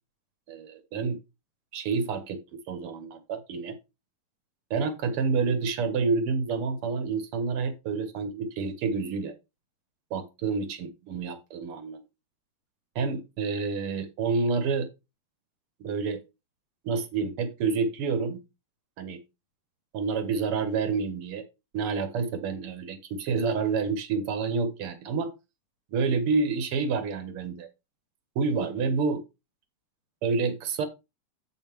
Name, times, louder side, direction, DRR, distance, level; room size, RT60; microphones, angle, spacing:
voice 1, 0.5-1.2 1.7-2.4 2.7-3.8 4.7-9.3 10.1-12.0 13.0-14.9 15.8-16.2 16.8-18.4 19.0-19.2 19.9-21.5 21.7-25.3 25.9-27.7 28.4-29.2 30.2-30.9, right 4 dB, 90° right, 2.2 m, -28 dB
7.5 x 7.2 x 3.5 m
omnidirectional pair, 2.4 m